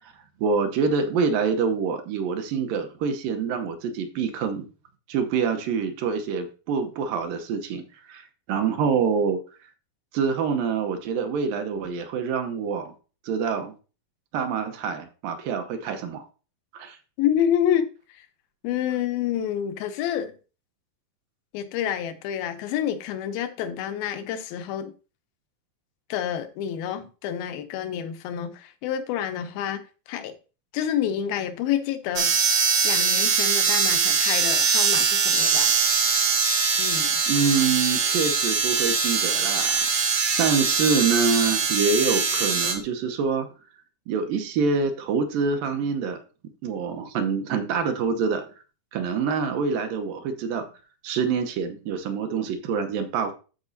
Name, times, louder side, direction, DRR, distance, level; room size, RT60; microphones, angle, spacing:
voice 1, 0.4-4.7 5.1-9.4 10.1-12.9 13.3-13.7 14.3-16.3 16.7-17.0 37.3-43.5 44.1-46.2 46.6-48.4 48.9-50.7 51.0-53.3, right 5 dB, 75° right, 2.5 m, -26 dB
voice 2, 17.2-18.3 18.6-20.3 21.5-24.9 26.1-30.3 30.7-32.4 32.8-35.8 36.8-37.2, left 10 dB, 90° left, 2.7 m, -28 dB
sound 1, 32.2-42.7, right 5 dB, 60° right, 1.4 m, -22 dB
13.0 x 5.1 x 2.7 m
omnidirectional pair, 4.1 m